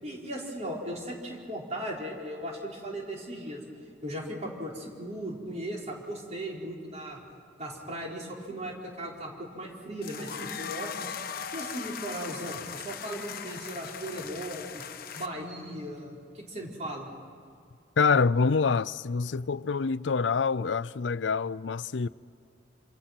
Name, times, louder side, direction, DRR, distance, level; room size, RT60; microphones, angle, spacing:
voice 1, 0.0-3.6 4.0-7.2 7.6-11.1 11.5-14.9 15.1-17.1, right 1 dB, 40° right, 4.7 m, -37 dB
sound 1, 10.0-15.3, left 7 dB, 55° left, 1.0 m, -39 dB
voice 2, 18.0-22.1, left 5 dB, 80° left, 0.5 m, -26 dB
27.0 x 27.0 x 6.0 m
head